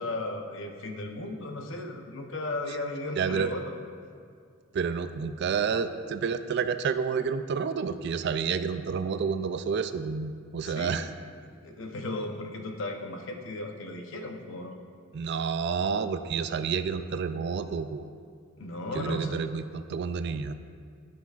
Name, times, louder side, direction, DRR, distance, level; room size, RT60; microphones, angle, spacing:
voice 1, 0.0-3.7 10.6-11.1 11.6-14.8 18.6-19.4, left 2 dB, 60° left, 3 dB, 0.8 m, -35 dB
voice 2, 3.2-3.5 4.7-11.1 15.1-18.1 18.9-20.5, right 6 dB, 50° right, 11 dB, 0.3 m, -29 dB
14.0 x 5.8 x 2.4 m, 2.2 s
head